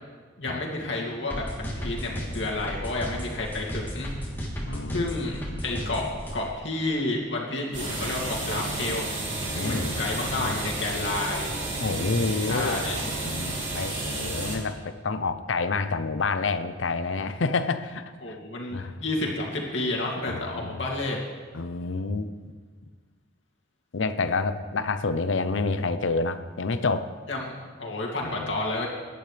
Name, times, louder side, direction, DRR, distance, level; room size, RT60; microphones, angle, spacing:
voice 1, 0.4-4.1 4.9-9.1 9.5-11.5 12.5-13.0 18.2-21.2 27.3-28.9, left 2 dB, 70° left, -2 dB, 2.5 m, -30 dB
sound 1, 1.3-6.3, equal, 10° left, 3.2 m, -33 dB
voice 2, 4.7-5.1 5.5-5.6 9.5-10.6 11.8-18.4 18.7-18.9 20.3-20.8 21.5-22.5 23.9-27.1 28.4-28.6, left 3 dB, 90° left, 11 dB, 0.7 m, -29 dB
sound 2, 7.7-14.6, right 2 dB, 40° right, 3.6 m, -31 dB
22.5 x 11.0 x 3.4 m, 1.5 s
head